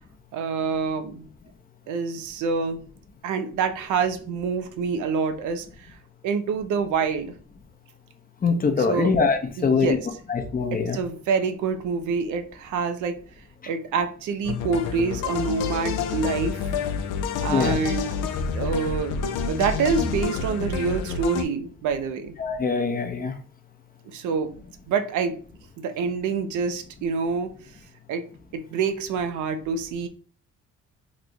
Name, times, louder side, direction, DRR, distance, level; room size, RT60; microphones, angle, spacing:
voice 1, 0.3-1.3 1.9-2.8 3.2-5.9 6.2-7.3 8.8-9.1 9.6-10.1 10.7-13.2 13.7-16.6 17.4-18.2 18.5-22.3 24.1-25.4 25.8-27.5 28.1-28.2 28.5-30.1, right 5 dB, 85° right, 9 dB, 0.6 m, -27 dB
voice 2, 8.4-10.0 10.3-11.0 17.5-17.8 22.4-23.3, left 5 dB, 30° left, 7 dB, 0.6 m, -23 dB
sound 1, 14.4-21.4, left 6 dB, 85° left, 0.5 m, -28 dB
3.0 x 2.2 x 3.8 m, 0.41 s
cardioid pair, 90°, 30 cm